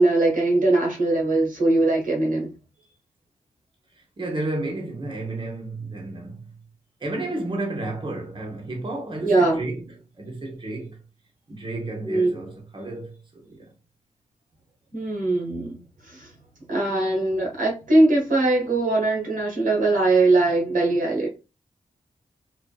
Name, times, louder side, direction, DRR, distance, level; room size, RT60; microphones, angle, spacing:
voice 1, 0.0-2.5 9.2-9.6 12.1-12.3 14.9-15.8 16.1-16.3 16.7-21.3, right 2 dB, 75° right, 1.2 m, -21 dB
voice 2, 4.2-6.5 7.0-11.0 11.5-13.7, right 2 dB, 35° right, 0.9 m, -32 dB
2.5 x 2.4 x 2.2 m
cardioid pair, 50°, 14 cm